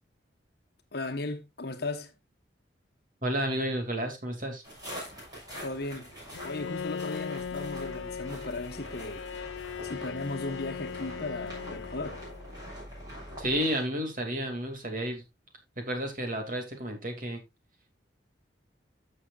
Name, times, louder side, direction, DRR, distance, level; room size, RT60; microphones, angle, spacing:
voice 1, 0.9-2.1 5.6-6.1 6.4-9.3 9.8-12.2, left 2 dB, 55° left, 1.2 m, -36 dB
voice 2, 3.2-4.6 13.4-15.2 15.8-17.4, equal, 45° right, 2.5 m, -31 dB
sound 1, 4.6-13.8, equal, 20° right, 6.7 m, -45 dB
Bowed string instrument, 6.3-12.6, left 7 dB, 80° left, 0.4 m, -39 dB
sound 2, 7.4-13.6, left 1 dB, 20° left, 3.3 m, -48 dB
14.5 x 6.5 x 2.5 m
head